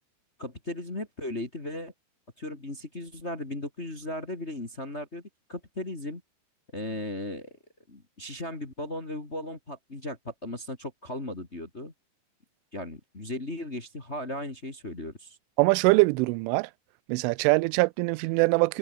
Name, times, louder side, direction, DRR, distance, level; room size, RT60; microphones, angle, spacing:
voice 1, 0.4-1.9 2.4-5.2 5.5-6.2 6.7-7.6 7.9-11.9 12.7-15.4, left 1 dB, 20° left, 1.9 m, -36 dB
voice 2, 15.6-16.7 17.1-18.8, right 25 dB, 90° right, 3.0 m, -23 dB
omnidirectional pair, 5.5 m